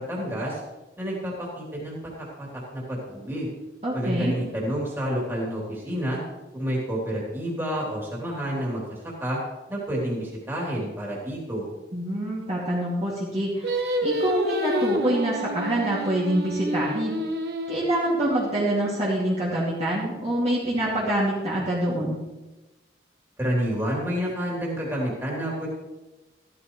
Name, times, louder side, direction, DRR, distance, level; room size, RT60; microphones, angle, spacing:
voice 1, 0.1-0.6 1.0-2.0 2.4-2.5 2.7-3.5 3.9-6.2 6.5-9.4 9.7-11.7 23.4-25.7, equal, 15° right, -4 dB, 3.3 m, -29 dB
voice 2, 3.8-4.3 11.9-17.1 17.7-22.2, right 1 dB, 35° right, -7 dB, 2.5 m, -26 dB
Singing, 13.6-18.9, equal, 60° right, 1.3 m, -29 dB
14.5 x 12.5 x 3.2 m, 1.1 s
head